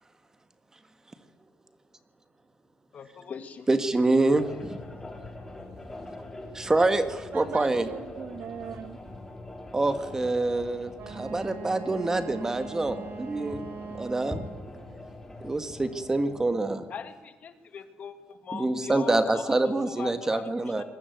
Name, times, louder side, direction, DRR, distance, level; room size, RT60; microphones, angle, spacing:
voice 1, 2.9-3.7 4.5-5.7 16.9-20.8, left 6 dB, 45° left, 9 dB, 2.1 m, -41 dB
voice 2, 3.7-4.8 6.5-7.9 9.7-13.7 14.0-14.4 15.4-16.9 18.5-20.8, right 2 dB, 15° right, 10 dB, 1.8 m, -26 dB
sound 1, 4.3-16.5, left 2 dB, 10° left, 3.8 m, -43 dB
voice 3, 7.3-9.0 20.6-20.8, right 8 dB, 55° right, 12 dB, 1.6 m, -39 dB
Wind instrument woodwind instrument, 11.0-14.7, right 5 dB, 85° right, 4.3 m, -41 dB
25.5 x 21.5 x 9.4 m, 1.2 s
cardioid pair, 165°, 4 cm